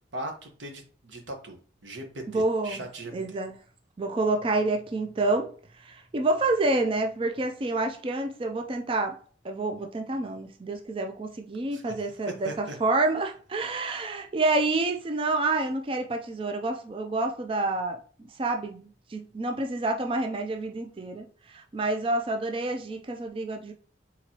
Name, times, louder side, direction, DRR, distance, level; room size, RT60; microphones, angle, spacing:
voice 1, 0.1-3.4 11.7-12.1 12.4-12.8, right 1 dB, 90° right, 1.1 m, -39 dB
voice 2, 2.3-2.8 3.1-3.5 4.0-5.5 5.9-9.2 9.4-18.0 18.4-23.7, right 2 dB, 30° right, 0.4 m, -28 dB
4.4 x 3.8 x 2.9 m
head